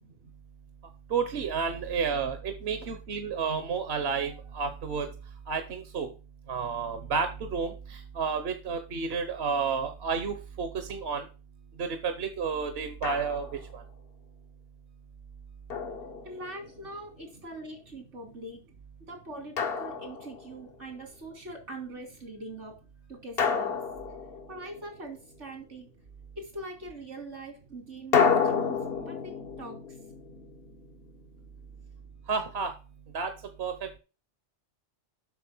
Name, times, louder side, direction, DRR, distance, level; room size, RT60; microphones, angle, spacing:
voice 1, 1.1-5.1 5.5-6.1 6.5-11.2 11.8-13.5 13.7-13.8 32.3-32.7 33.1-33.3 33.6-33.7, right 5 dB, 60° right, 8 dB, 1.2 m, -31 dB
Drum, 13.0-13.7 15.7-16.8 19.6-20.7 23.4-25.0 28.1-31.1, left 6 dB, 55° left, 1.2 m, -30 dB
voice 2, 16.2-18.6 19.1-22.8 23.1-23.8 24.5-25.9 26.4-30.0, right 1 dB, 85° right, 3 dB, 3.6 m, -42 dB
7.6 x 6.4 x 6.1 m, 0.33 s
omnidirectional pair, 1.2 m